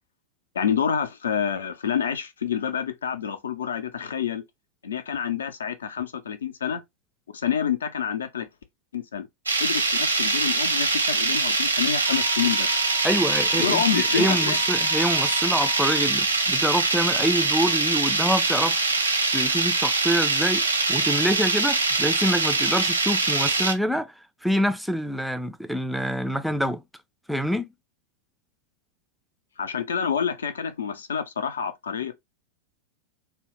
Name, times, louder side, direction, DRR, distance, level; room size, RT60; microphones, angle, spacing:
voice 1, 0.5-4.4 4.8-6.8 7.3-8.5 8.9-9.3 9.6-12.8 13.5-14.6 29.6-32.1, left 8 dB, 70° left, 0.4 m, -28 dB
sound 1, 9.5-23.7, right 3 dB, 80° right, 0.6 m, -23 dB
Wind instrument woodwind instrument, 12.0-16.0, left 12 dB, 30° left, 0.7 m, -39 dB
voice 2, 13.0-18.8 19.3-20.6 20.9-24.1 24.4-26.8 27.3-27.7, equal, ahead, 0.3 m, -26 dB
2.8 x 2.0 x 3.1 m
figure-of-eight pair, 90°, 0 cm